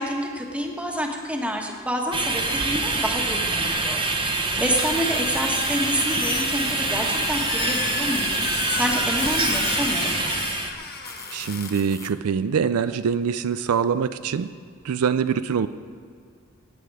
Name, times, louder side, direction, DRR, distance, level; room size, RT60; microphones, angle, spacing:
voice 1, 0.0-10.1, equal, 5° right, 1 dB, 1.4 m, -28 dB
sound 1, 2.1-10.7, right 3 dB, 25° right, 1.0 m, -25 dB
sound 2, 4.7-10.2 11.0-12.1, left 4 dB, 15° left, 0.7 m, -39 dB
Squeak, 5.4-5.8 6.1-11.7, left 6 dB, 50° left, 1.5 m, -33 dB
voice 2, 11.3-14.5 14.8-15.7, right 6 dB, 80° right, 13 dB, 0.4 m, -24 dB
18.5 x 9.1 x 4.8 m, 2.2 s
head